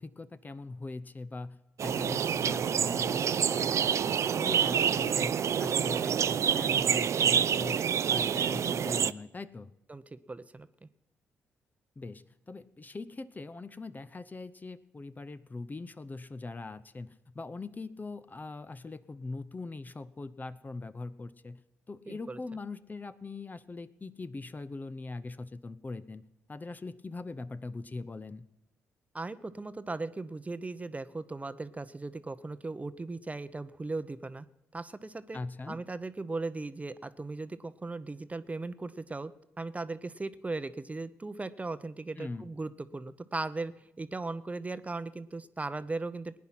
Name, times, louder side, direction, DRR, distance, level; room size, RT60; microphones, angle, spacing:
voice 1, 0.0-9.7 12.0-21.6 21.9-26.2 26.5-28.4 35.3-35.8 42.2-42.5, left 3 dB, 30° left, 12 dB, 0.7 m, -41 dB
sound 1, 1.8-9.1, right 8 dB, 55° right, 0.4 m, -27 dB
voice 2, 9.9-10.9 22.1-22.4 29.1-34.5 34.7-35.4 35.7-39.3 39.6-43.7 44.0-46.4, right 3 dB, 25° right, 13 dB, 0.7 m, -38 dB
18.5 x 9.5 x 5.8 m, 0.89 s
hypercardioid pair, 50°, 6 cm